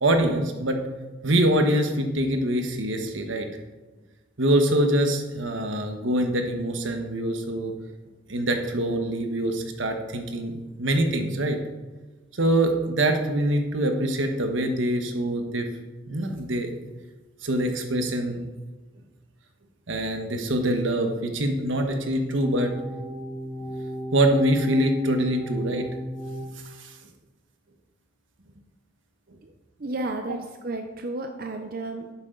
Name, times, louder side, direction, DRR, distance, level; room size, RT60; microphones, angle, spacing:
voice 1, 0.0-0.8 1.2-3.5 4.4-7.7 8.3-11.6 12.3-15.7 16.0-16.7 17.4-18.4 19.9-22.7 24.1-25.8 26.8-27.0, right 1 dB, 80° right, 5 dB, 1.4 m, -24 dB
sound 1, 22.4-26.5, equal, 10° left, 1.2 m, -35 dB
voice 2, 29.8-32.1, right 2 dB, 50° right, 5 dB, 0.7 m, -32 dB
11.0 x 8.8 x 3.9 m, 1.2 s
head